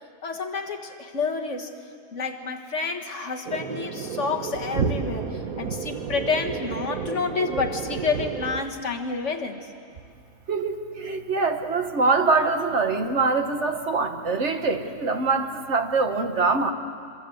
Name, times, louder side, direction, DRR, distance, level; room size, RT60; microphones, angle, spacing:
voice 1, 0.2-1.7 2.1-9.7, left 4 dB, 60° left, 3 dB, 1.9 m, -29 dB
sound 1, 3.5-8.6, right 6 dB, 85° right, 1.6 m, -31 dB
voice 2, 10.5-16.7, right 4 dB, 55° right, 6 dB, 1.6 m, -24 dB
26.0 x 24.0 x 7.8 m, 2.3 s
omnidirectional pair, 1.4 m